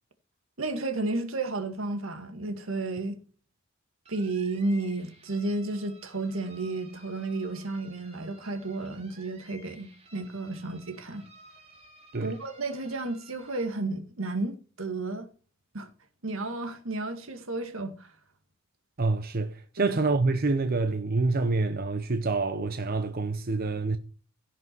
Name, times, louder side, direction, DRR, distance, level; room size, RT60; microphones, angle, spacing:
voice 1, 0.6-3.2 4.1-11.2 12.2-15.3 15.7-15.9 16.2-18.1 19.8-20.0, right 2 dB, 75° right, 2.0 m, -32 dB
sound 1, 4.0-13.6, right 1 dB, 30° right, 2.8 m, -55 dB
voice 2, 19.0-24.0, right 3 dB, 45° right, 0.8 m, -27 dB
16.5 x 6.0 x 4.6 m
head